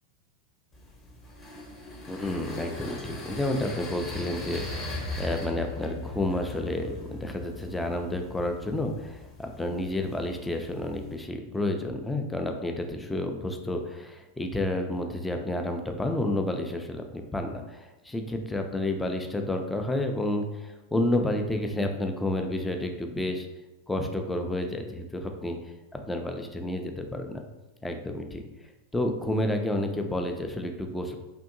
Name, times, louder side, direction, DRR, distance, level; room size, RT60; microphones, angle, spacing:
sound 1, 0.7-11.1, left 2 dB, 25° left, 0.8 m, -39 dB
voice 1, 2.1-23.5 23.9-25.6 26.0-27.4 27.8-28.4 28.9-31.1, left 1 dB, 10° left, 4 dB, 0.3 m, -30 dB
2.7 x 2.6 x 2.5 m, 1.0 s
figure-of-eight pair, 90°, 0 cm